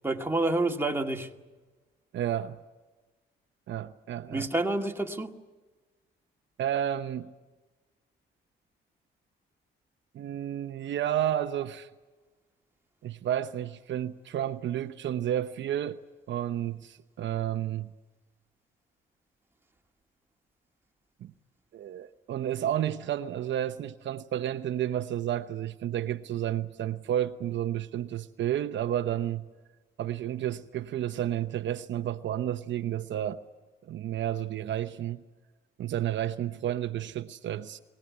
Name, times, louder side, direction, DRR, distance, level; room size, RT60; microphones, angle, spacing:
voice 1, 0.0-1.3 4.3-5.4, right 2 dB, 10° right, 2 dB, 2.1 m, -28 dB
voice 2, 2.1-2.6 3.7-4.5 6.6-7.3 10.1-11.9 13.0-16.0 16.3-17.9 21.2-21.3 21.7-29.4 30.0-33.4 33.9-35.2 35.8-37.8, right 11 dB, 70° right, 9 dB, 0.9 m, -31 dB
23.5 x 18.0 x 9.7 m, 1.3 s
cardioid pair, 90°, 20 cm